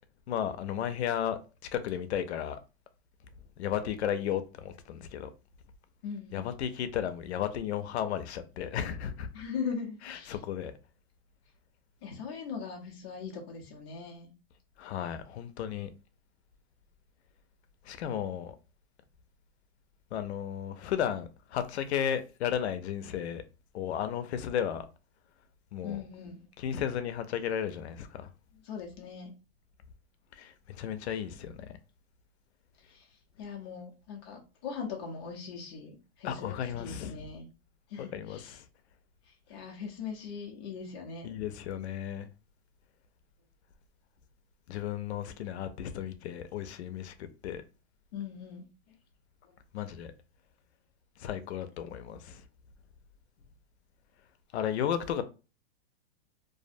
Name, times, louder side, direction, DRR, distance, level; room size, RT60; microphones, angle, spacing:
voice 1, 0.3-1.4 1.7-2.6 3.6-5.3 6.3-9.3 10.0-10.7 14.8-15.9 17.8-18.6 20.1-23.4 23.7-24.9 25.7-26.0 26.6-28.3 30.3-31.7 36.2-37.1 38.0-38.7 41.2-42.3 44.7-47.1 47.4-47.6 49.7-50.1 51.2-52.4 54.5-55.2, left 9 dB, 90° left, 0.5 m, -34 dB
voice 2, 6.0-6.5 9.3-10.4 12.0-14.3 25.8-26.5 28.6-29.3 32.9-33.1 33.4-37.5 37.9-38.6 39.5-41.3 48.1-48.7, left 6 dB, 25° left, 0.4 m, -40 dB
2.4 x 2.0 x 2.5 m
supercardioid pair, 170°, 32 cm